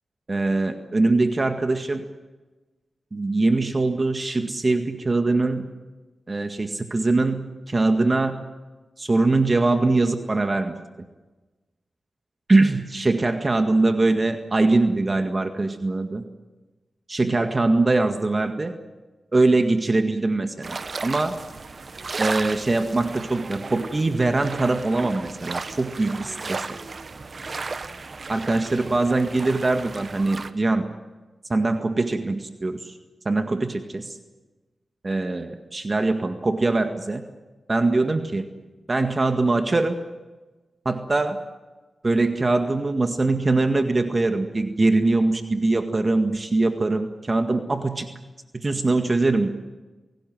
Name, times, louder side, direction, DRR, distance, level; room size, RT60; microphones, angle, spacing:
voice 1, 0.3-2.0 3.1-5.7 6.3-8.4 9.0-10.7 12.5-16.2 17.1-18.7 19.3-20.8 21.0-21.4 22.2-26.8 28.3-30.9 31.5-32.9 33.3-34.2 35.0-37.2 37.7-38.5 38.9-40.0 40.9-41.4 42.0-48.1 48.5-49.5, right 2 dB, 40° right, 7 dB, 1.9 m, -22 dB
sound 1, 20.6-30.5, right 4 dB, 55° right, 1.4 m, -34 dB
29.5 x 18.0 x 7.8 m, 1.2 s
cardioid pair, 45°, 0 cm